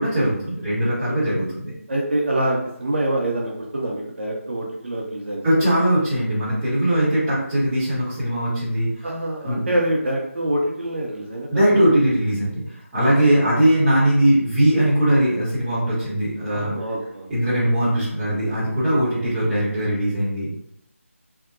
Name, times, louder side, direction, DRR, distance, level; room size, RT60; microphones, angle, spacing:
voice 1, 0.0-1.7 5.4-9.1 9.4-9.6 11.5-12.6 12.9-16.7 17.3-20.5, right 1 dB, 10° right, -12 dB, 0.7 m, -20 dB
voice 2, 1.9-5.4 9.0-11.8 16.5-17.3 19.1-19.4, right 1 dB, 50° right, -2 dB, 0.5 m, -25 dB
2.6 x 2.1 x 2.4 m, 0.75 s
figure-of-eight pair, 160°, 8 cm